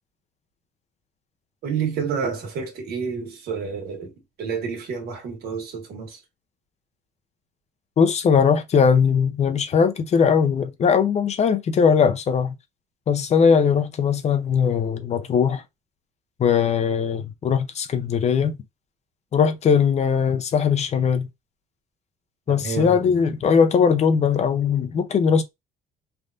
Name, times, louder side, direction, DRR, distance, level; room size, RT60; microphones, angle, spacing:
voice 1, 1.6-4.1 4.4-6.2 22.5-23.1, right 6 dB, 70° right, 1.5 m, -29 dB
voice 2, 8.0-12.5 13.1-15.6 16.4-18.5 19.3-21.3 22.5-25.4, left 6 dB, 40° left, 0.6 m, -20 dB
3.3 x 2.5 x 2.4 m
cardioid pair, 110°, 17 cm